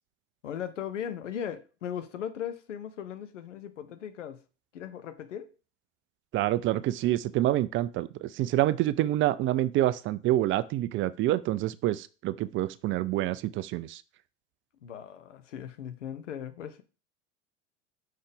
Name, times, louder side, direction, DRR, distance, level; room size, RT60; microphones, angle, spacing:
voice 1, 0.4-4.4 4.7-5.5 14.8-16.8, left 9 dB, 80° left, 0.9 m, -38 dB
voice 2, 6.3-14.0, right 14 dB, 35° right, 0.4 m, -27 dB
5.6 x 5.6 x 3.5 m
figure-of-eight pair, 75°, 37 cm